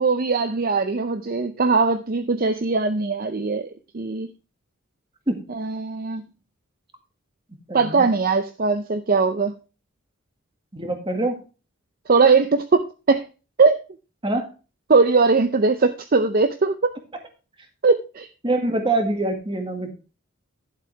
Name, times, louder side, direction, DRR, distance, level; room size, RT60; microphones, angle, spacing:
voice 1, 0.0-4.3 5.5-6.2 7.7-9.5 12.1-13.2 13.6-13.8 14.9-16.8 17.8-18.3, right 4 dB, 45° right, 9 dB, 0.6 m, -20 dB
voice 2, 7.7-8.1 10.7-11.4 14.2-14.5 18.4-19.9, right 2 dB, 25° right, 4 dB, 1.9 m, -24 dB
11.5 x 7.5 x 3.3 m, 0.32 s
head